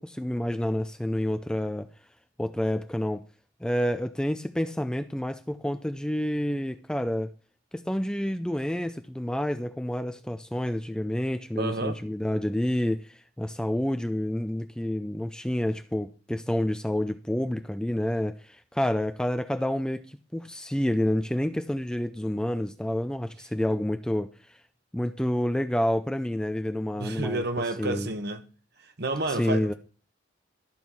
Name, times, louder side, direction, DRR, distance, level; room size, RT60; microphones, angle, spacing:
voice 1, 0.0-1.9 2.4-3.2 3.6-7.3 7.7-24.6 24.9-27.4 27.8-28.1 29.3-29.7, left 1 dB, 5° left, 0.4 m, -29 dB
voice 2, 11.6-12.0 27.0-28.4 29.0-29.7, right 2 dB, 55° right, 1.1 m, -30 dB
12.5 x 4.7 x 5.5 m
head